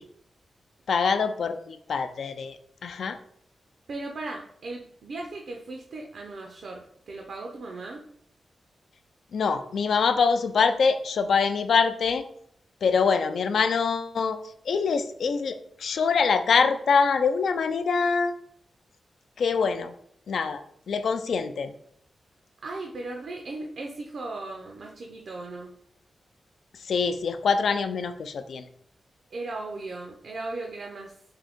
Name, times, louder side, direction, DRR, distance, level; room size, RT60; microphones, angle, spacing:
voice 1, 0.9-2.6 2.8-3.2 9.3-12.2 12.8-14.4 14.7-18.3 19.4-19.9 20.3-21.7 26.8-28.6, left 5 dB, 75° left, 9 dB, 0.3 m, -24 dB
voice 2, 3.9-8.0 22.6-25.8 29.3-31.2, right 2 dB, 65° right, 1 dB, 0.5 m, -37 dB
3.7 x 2.6 x 3.5 m, 0.65 s
wide cardioid pair, 145°, 0 cm